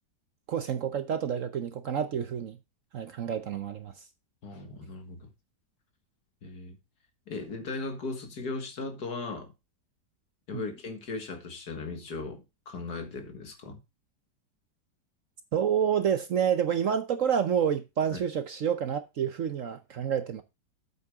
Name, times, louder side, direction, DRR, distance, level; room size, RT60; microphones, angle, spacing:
voice 1, 0.5-2.6 2.9-3.9 10.5-10.6 15.5-20.4, right 8 dB, 60° right, 1.0 m, -28 dB
voice 2, 4.4-5.3 6.4-6.8 7.3-9.5 10.5-13.8 18.1-18.2, left 3 dB, 65° left, 2.2 m, -37 dB
8.3 x 8.2 x 3.6 m
omnidirectional pair, 1.9 m